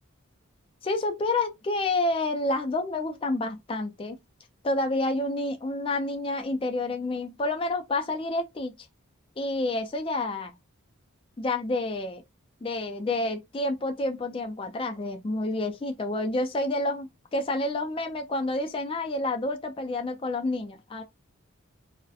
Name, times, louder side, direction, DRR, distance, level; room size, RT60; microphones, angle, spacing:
voice 1, 0.8-4.2 4.6-8.7 9.4-10.5 11.4-12.2 12.6-21.0, left 2 dB, 25° left, 0.3 m, -29 dB
2.7 x 2.0 x 2.3 m
head